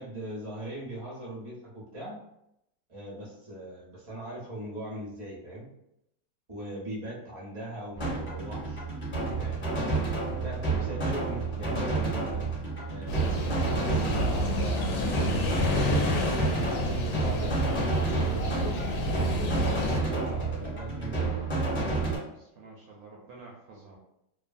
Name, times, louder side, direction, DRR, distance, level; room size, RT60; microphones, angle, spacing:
voice 1, 0.0-2.2 2.9-5.7 6.5-9.6 10.3-12.4 12.9-15.1 15.8-18.7 19.3-21.4, right 1 dB, 50° right, -5 dB, 0.3 m, -40 dB
sound 1, 8.0-22.2, right 3 dB, 35° left, 0.9 m, -30 dB
sound 2, 13.1-20.0, left 2 dB, 70° left, 1.0 m, -30 dB
voice 2, 22.3-24.0, right 3 dB, 70° right, -3 dB, 0.8 m, -49 dB
2.9 x 2.3 x 2.5 m, 0.81 s
omnidirectional pair, 2.0 m